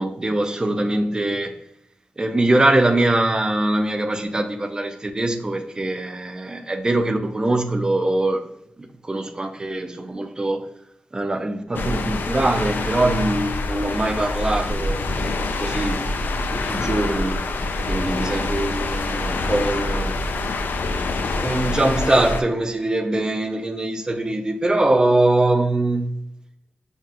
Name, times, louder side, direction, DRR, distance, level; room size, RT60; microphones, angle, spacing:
voice 1, 0.0-1.6 2.2-8.5 8.8-10.7 11.1-16.1 16.5-17.4 17.9-20.2 21.4-26.2, right 2 dB, 25° right, 0.4 m, -22 dB
sound 1, 11.7-22.4, left 2 dB, 85° left, 0.4 m, -25 dB
5.5 x 2.4 x 2.8 m
wide cardioid pair, 125°, 3 cm